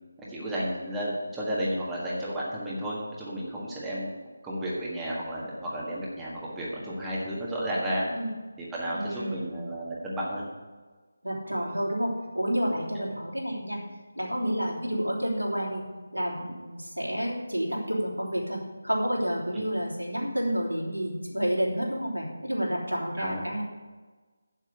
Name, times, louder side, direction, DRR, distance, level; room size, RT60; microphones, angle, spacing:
voice 1, 0.3-4.1 4.4-8.0 8.6-10.4 12.9-13.0 19.5-19.6 23.2-23.4, equal, 5° right, -7 dB, 1.6 m, -32 dB
voice 2, 8.9-9.6 11.2-13.8 14.1-15.8 16.1-23.6, equal, 85° right, -3 dB, 3.4 m, -30 dB
7.7 x 7.5 x 8.4 m, 1.3 s
figure-of-eight pair, 155°, 0 cm